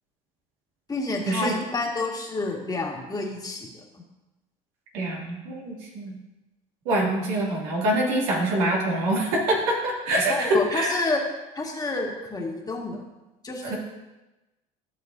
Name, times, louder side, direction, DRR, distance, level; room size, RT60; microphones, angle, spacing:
voice 1, 0.9-4.0 10.3-11.2 11.5-13.0 13.4-13.7, left 3 dB, 20° left, 0 dB, 1.8 m, -29 dB
voice 2, 4.9-6.1 6.9-11.0 13.6-13.8, right 1 dB, 80° right, -3 dB, 2.5 m, -25 dB
13.5 x 6.3 x 2.7 m, 1.0 s
supercardioid pair, 85°, 18 cm